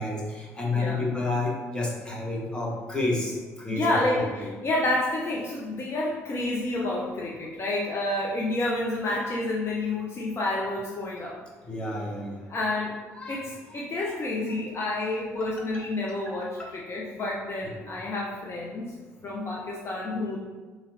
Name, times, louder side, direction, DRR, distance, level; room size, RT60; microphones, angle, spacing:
voice 1, 0.0-4.5 11.7-12.4 13.1-13.4 13.7-14.2 15.4-15.5 16.3-16.4, left 2 dB, 10° left, -3 dB, 1.3 m, -30 dB
voice 2, 0.7-1.1 3.7-11.4 12.5-12.9 13.3-18.9 19.2-20.4, left 2 dB, 35° left, -3 dB, 0.7 m, -29 dB
3.7 x 3.0 x 4.2 m, 1.3 s
figure-of-eight pair, 50°, 8 cm